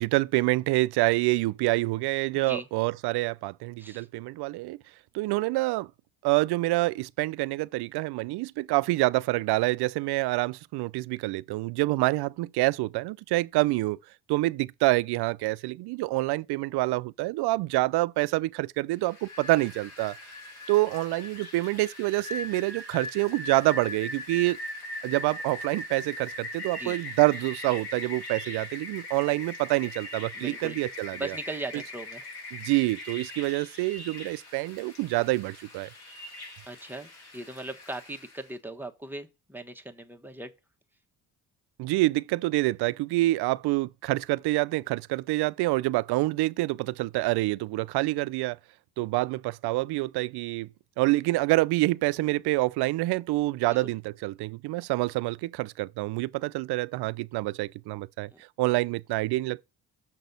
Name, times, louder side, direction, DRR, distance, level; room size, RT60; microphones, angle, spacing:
voice 1, 0.0-4.8 5.1-5.9 6.2-14.0 14.3-20.2 20.7-24.6 25.0-31.3 32.5-35.9 41.8-48.6 49.0-50.7 51.0-58.3 58.6-59.6, right 20 dB, 80° right, 0.5 m, -27 dB
voice 2, 2.3-2.7 3.8-4.1 26.8-27.0 30.3-30.8 31.1-32.3 36.7-40.5 53.7-53.9 58.3-58.4, right 2 dB, 5° right, 1.1 m, -39 dB
Rain, 19.0-38.5, left 2 dB, 80° left, 4.2 m, -41 dB
7.1 x 4.1 x 5.2 m
cardioid pair, 95°, 39 cm